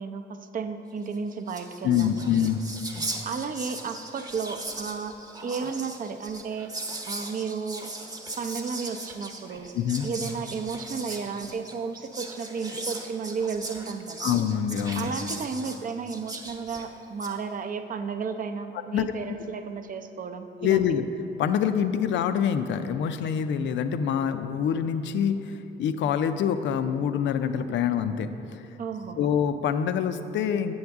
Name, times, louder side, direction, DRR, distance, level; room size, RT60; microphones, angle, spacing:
voice 1, 0.0-2.5 3.2-5.2 5.4-6.7 7.1-7.9 8.4-9.7 10.0-14.3 14.9-20.9 28.8-29.3, right 5 dB, 45° right, 8 dB, 0.5 m, -33 dB
Whispering, 1.1-1.2 1.4-17.4, right 2 dB, 20° right, 0.9 m, -38 dB
voice 2, 1.8-2.6 9.7-10.1 14.2-15.1 18.9-19.1 20.6-21.0 21.4-28.6 29.2-30.7, left 8 dB, 70° left, 10 dB, 0.5 m, -25 dB
7.9 x 7.7 x 3.5 m, 3.0 s
cardioid pair, 90°, 20 cm